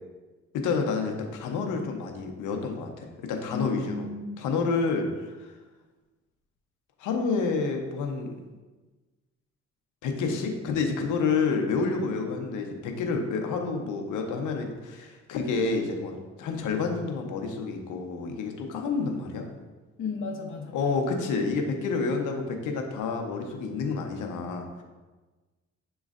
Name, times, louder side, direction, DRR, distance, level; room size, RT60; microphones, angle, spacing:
voice 1, 0.5-4.1 4.4-5.6 7.0-8.3 10.0-19.5 20.7-24.8, left 4 dB, 80° left, 3 dB, 0.7 m, -29 dB
voice 2, 3.4-4.4 20.0-20.8, left 4 dB, 45° left, 1 dB, 0.8 m, -34 dB
7.1 x 3.1 x 2.4 m, 1.3 s
cardioid pair, 90°, 30 cm